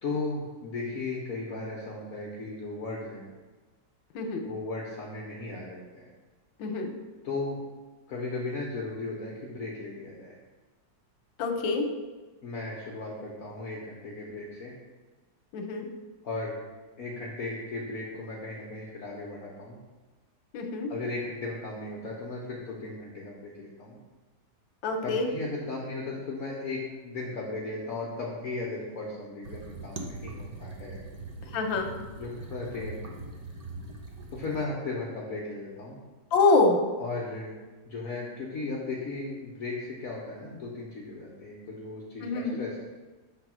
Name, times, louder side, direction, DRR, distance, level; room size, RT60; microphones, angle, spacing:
voice 1, 0.0-3.3 4.4-6.1 7.2-7.6 8.1-10.3 12.4-14.7 16.2-16.6 17.0-19.8 20.9-24.0 25.0-31.0 32.2-33.1 34.3-36.0 37.0-37.5 37.9-42.8, left 3 dB, 55° left, -4 dB, 1.3 m, -36 dB
voice 2, 6.6-6.9 11.4-11.9 15.5-15.9 20.5-20.9 24.8-25.3 31.5-31.9 36.3-36.8 42.2-42.6, left 3 dB, 90° left, 4 dB, 1.6 m, -25 dB
sound 1, 29.4-34.7, right 2 dB, 70° right, 0.3 m, -41 dB
5.9 x 4.0 x 6.1 m, 1.3 s
omnidirectional pair, 2.0 m